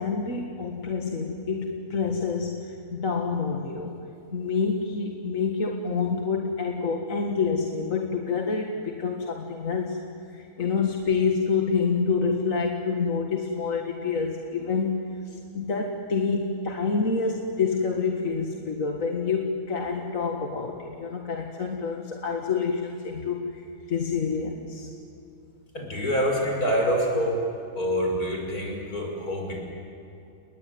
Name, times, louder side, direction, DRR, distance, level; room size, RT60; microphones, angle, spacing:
voice 1, 0.0-3.9 4.3-10.0 10.3-24.9, left 5 dB, 60° left, 2 dB, 2.2 m, -27 dB
voice 2, 25.7-27.4 27.7-29.6, equal, 80° left, 1 dB, 6.2 m, -26 dB
30.0 x 20.5 x 9.5 m, 2.7 s
omnidirectional pair, 1.6 m